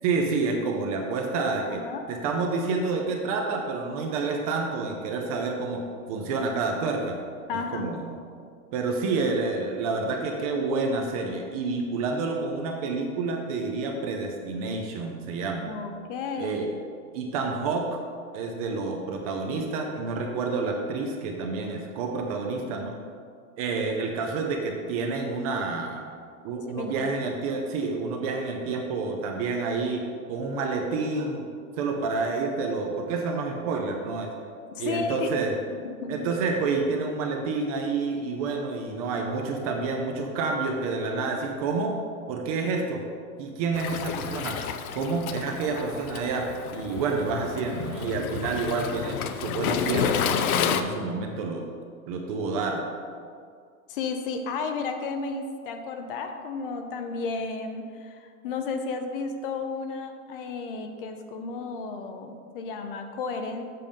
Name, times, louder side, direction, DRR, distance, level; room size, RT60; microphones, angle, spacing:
voice 1, 0.0-7.2 7.7-8.2 8.7-15.7 16.4-16.7 17.1-18.0 18.3-23.0 23.6-26.0 26.4-30.0 30.3-31.4 31.8-34.3 34.8-35.5 36.1-42.0 42.3-43.0 43.4-44.6 44.9-51.7 52.1-52.8, right 4 dB, 25° right, 2 dB, 0.5 m, -29 dB
voice 2, 1.7-2.0 7.5-7.9 15.6-16.7 26.7-27.1 34.7-35.3 35.8-36.3 53.9-63.6, left 4 dB, 40° left, 6 dB, 0.6 m, -33 dB
Waves surf, 43.7-50.8, left 8 dB, 75° left, 0.7 m, -30 dB
7.6 x 5.3 x 5.1 m, 2.2 s
hypercardioid pair, 155°, 43 cm